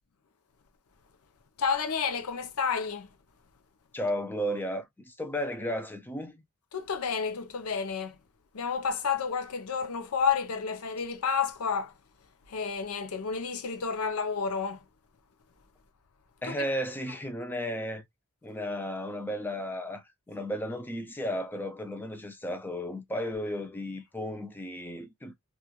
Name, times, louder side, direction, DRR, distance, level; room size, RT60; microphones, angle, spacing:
voice 1, 1.6-3.1 6.7-8.2 8.5-12.0 12.5-14.9 16.4-16.6, left 6 dB, 75° left, 0.6 m, -30 dB
voice 2, 3.9-6.4 16.4-18.0 18.4-25.3, equal, 10° left, 0.5 m, -34 dB
2.9 x 2.4 x 2.3 m
head